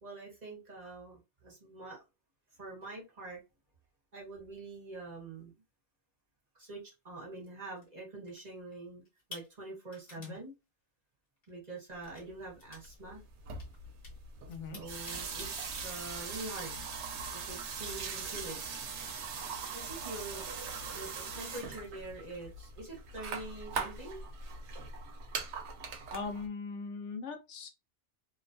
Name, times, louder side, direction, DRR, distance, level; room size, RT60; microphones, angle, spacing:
voice 1, 0.0-2.0 2.6-3.4 4.1-5.5 6.5-9.0 9.3-10.5 11.5-13.2 14.7-16.8 17.3-18.6 19.7-20.4 20.9-24.2, right 2 dB, 40° right, 1.3 m, -45 dB
sound 1, 7.4-7.9 8.3-8.7 9.0-10.4 11.4-11.5 11.9-12.3 12.6-12.9 13.2-15.5 15.8-16.2 16.6-17.0 17.6-18.7 19.0-19.8, left 3 dB, 60° left, 1.3 m, -53 dB
sound 2, 12.5-12.6 12.7-26.5, right 5 dB, 75° right, 0.9 m, -41 dB
voice 2, 26.1-27.7, left 4 dB, 90° left, 1.0 m, -40 dB
2.9 x 2.1 x 2.6 m
omnidirectional pair, 1.2 m